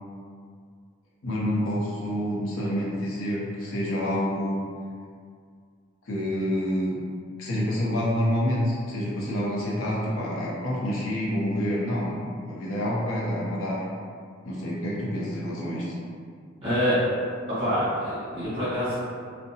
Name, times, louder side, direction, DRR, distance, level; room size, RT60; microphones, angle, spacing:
voice 1, 1.2-4.6 6.1-6.9 7.4-13.9 14.4-15.9, equal, 70° left, -5 dB, 0.5 m, -27 dB
voice 2, 16.6-17.0 17.6-19.0, equal, 30° right, -12 dB, 1.2 m, -26 dB
2.6 x 2.1 x 2.7 m, 2.1 s
head